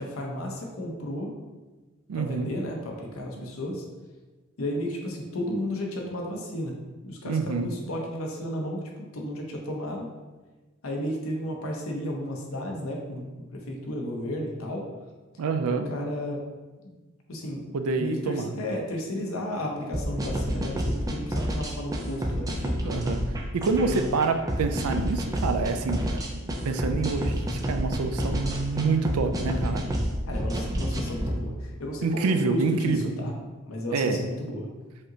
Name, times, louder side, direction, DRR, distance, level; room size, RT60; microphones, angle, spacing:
voice 1, 0.0-1.3 2.1-3.8 4.6-6.7 7.0-10.1 10.8-13.3 13.5-14.9 15.7-16.4 16.8-16.9 17.3-23.0 23.8-24.1 30.3-33.3 33.7-34.7, left 1 dB, 70° left, 0 dB, 0.7 m, -33 dB
voice 2, 2.1-2.5 3.4-3.5 7.2-7.7 15.4-15.9 17.7-18.5 22.8-23.2 23.5-26.4 26.6-29.8 32.0-33.1 33.9-34.3, right 4 dB, 85° right, 7 dB, 0.4 m, -27 dB
sound 1, 19.9-31.3, equal, 15° right, 0.4 m, -29 dB
5.1 x 2.8 x 2.7 m, 1.2 s
head